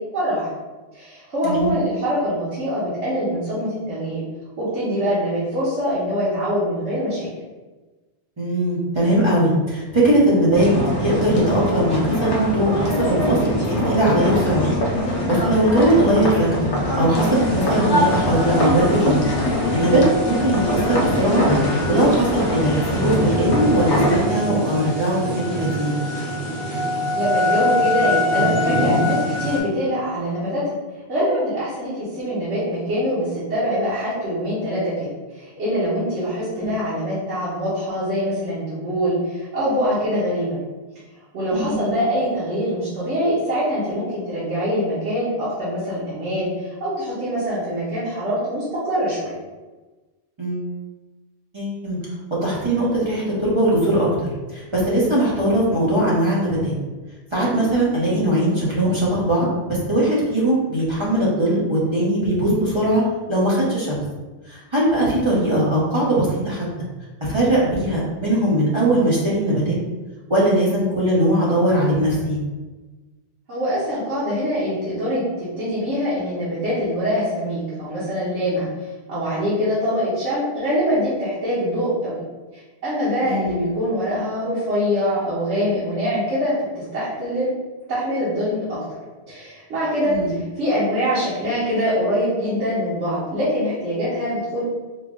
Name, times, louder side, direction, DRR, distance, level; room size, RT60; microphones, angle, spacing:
voice 1, 0.1-0.5 0.9-4.2 4.6-7.3 27.1-30.7 31.1-34.9 35.3-40.6 41.3-49.3 73.5-82.1 82.5-87.5 87.9-88.8 89.3-94.6, equal, 80° right, -12 dB, 1.4 m, -24 dB
voice 2, 8.4-10.7 11.0-13.4 13.7-14.7 15.1-16.5 17.0-19.3 19.7-21.4 21.9-26.0 36.5-36.7 41.5-41.9 50.4-50.6 51.5-52.0 52.3-54.3 54.5-56.7 57.3-63.0 63.3-64.0 64.5-66.6 67.2-69.8 70.3-72.4 83.2-83.5 90.0-90.3, right 1 dB, 25° right, -7 dB, 0.8 m, -20 dB
sound 1, 10.5-24.3, left 1 dB, 30° left, 0.5 m, -22 dB
sound 2, 17.1-29.6, left 1 dB, 45° right, 1.2 m, -25 dB
3.8 x 2.0 x 3.7 m, 1.2 s
omnidirectional pair, 1.2 m